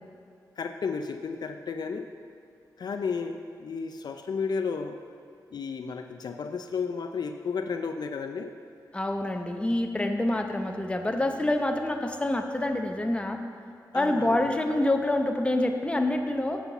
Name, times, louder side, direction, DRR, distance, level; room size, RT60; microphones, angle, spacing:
voice 1, 0.6-2.1 2.8-5.0 5.5-8.5 13.9-14.5, left 5 dB, 65° left, 6 dB, 0.4 m, -33 dB
voice 2, 8.9-13.4 13.9-16.6, left 1 dB, 15° left, 4 dB, 0.8 m, -27 dB
8.1 x 5.7 x 7.1 m, 2.3 s
cardioid pair, 80°, 8 cm